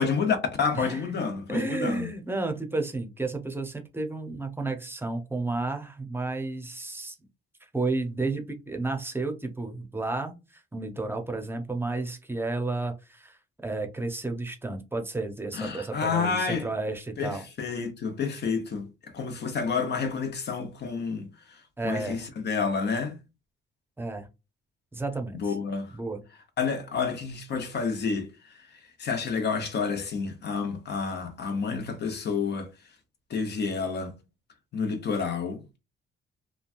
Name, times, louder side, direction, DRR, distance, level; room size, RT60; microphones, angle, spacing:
voice 1, 0.0-2.1 15.5-16.7 17.2-18.9 19.1-23.2 25.3-26.0 26.6-28.7 29.0-32.7 33.3-34.2 34.7-35.6, left 5 dB, 60° left, 0.9 m, -29 dB
voice 2, 0.7-1.2 1.5-7.2 7.7-17.4 21.8-22.3 24.0-24.3 24.9-25.5 25.9-26.2, right 3 dB, 10° right, 0.7 m, -32 dB
3.1 x 2.3 x 2.5 m
cardioid pair, 90°, 20 cm